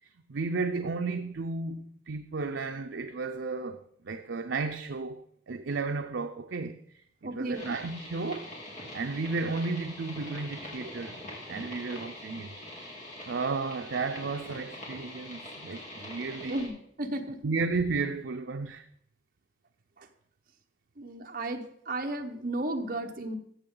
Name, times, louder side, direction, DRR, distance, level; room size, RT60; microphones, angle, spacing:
voice 1, 0.0-6.8 7.2-8.5 8.9-11.2 11.5-12.5 13.3-16.7 17.4-18.9, right 4 dB, 80° right, 0.6 m, -33 dB
voice 2, 7.2-7.7 16.4-17.4 20.0-20.1 21.0-23.4, right 1 dB, 50° right, 1.2 m, -34 dB
sound 1, 7.5-16.7, left 1 dB, 40° left, 3.3 m, -44 dB
14.5 x 7.9 x 3.9 m
head